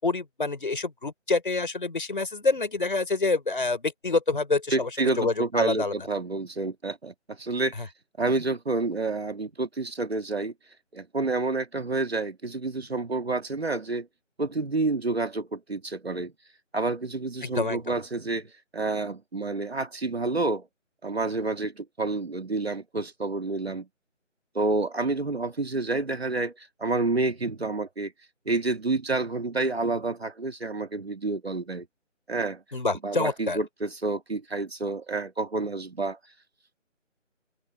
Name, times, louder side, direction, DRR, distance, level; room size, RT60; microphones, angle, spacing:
voice 1, 0.0-4.9 5.2-5.9 7.8-7.9 17.4-18.0 32.7-33.6, left 3 dB, 40° left, 5.4 m, -27 dB
voice 2, 4.7-7.7 8.2-10.5 10.9-14.1 14.4-16.3 16.7-20.7 21.0-23.9 24.5-28.1 28.5-31.9 32.3-32.6 33.0-36.2, right 3 dB, 55° right, 2.3 m, -29 dB
figure-of-eight pair, 180°, 38 cm